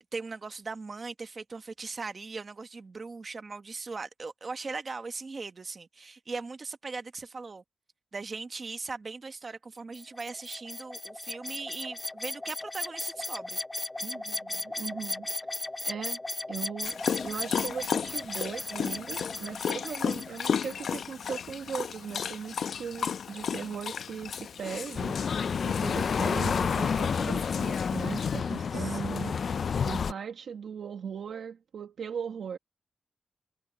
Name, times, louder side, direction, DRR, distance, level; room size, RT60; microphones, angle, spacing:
voice 1, 0.1-7.6 8.1-13.6 28.7-29.2, right 4 dB, 35° right, 1.0 m, -39 dB
sound 1, 9.9-21.0, left 2 dB, 15° left, 1.9 m, -37 dB
voice 2, 14.0-15.3 15.8-16.2 16.5-17.0 17.2-29.5 29.8-32.6, right 7 dB, 75° right, 1.2 m, -39 dB
Dog, 16.8-28.4, left 7 dB, 75° left, 1.1 m, -35 dB
sound 2, 25.0-30.1, left 6 dB, 55° left, 0.3 m, -29 dB
wide cardioid pair, 175°, 0 cm